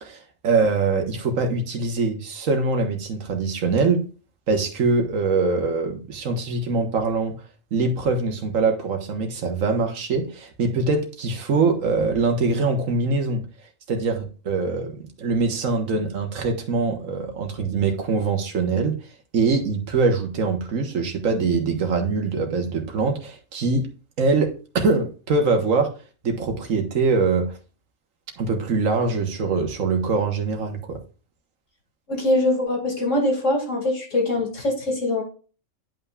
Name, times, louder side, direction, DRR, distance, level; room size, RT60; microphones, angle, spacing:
voice 1, 0.0-4.1 4.5-7.4 7.7-13.4 13.9-18.9 19.3-23.9 24.2-25.9 26.2-27.6 28.4-31.0, right 4 dB, 70° right, 1.7 m, -23 dB
voice 2, 32.1-35.2, left 2 dB, 65° left, 2.8 m, -23 dB
10.5 x 5.6 x 2.4 m
omnidirectional pair, 1.4 m